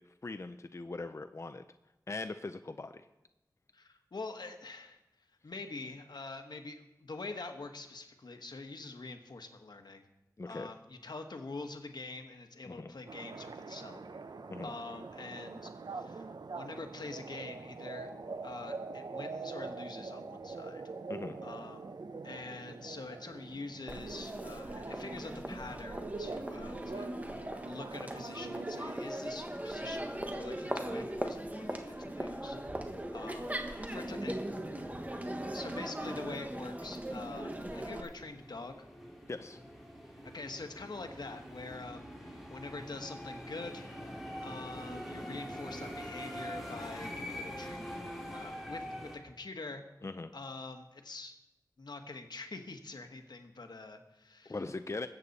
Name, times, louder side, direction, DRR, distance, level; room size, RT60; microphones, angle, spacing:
voice 1, 0.2-1.6 2.1-3.1 10.4-10.7 12.7-12.9 14.5-14.7 21.1-21.4 39.3-39.6 50.0-50.3 54.5-55.1, left 3 dB, 40° left, 9 dB, 0.5 m, -40 dB
voice 2, 3.7-5.0 5.4-10.0 10.5-14.0 14.6-18.1 18.4-20.8 21.4-21.8 22.2-32.6 33.1-34.4 35.5-38.9 40.3-43.8 44.4-47.8 48.3-49.8 50.3-51.4 51.8-54.6, left 3 dB, 80° left, 6 dB, 1.2 m, -45 dB
sound 1, 13.1-29.0, right 4 dB, 80° right, 0.7 m, -44 dB
Crowd, 23.9-38.0, right 1 dB, 20° right, 1.2 m, -39 dB
sound 2, 36.3-49.2, equal, ahead, 3.0 m, -45 dB
20.5 x 8.3 x 4.1 m, 0.96 s
wide cardioid pair, 70°, 7 cm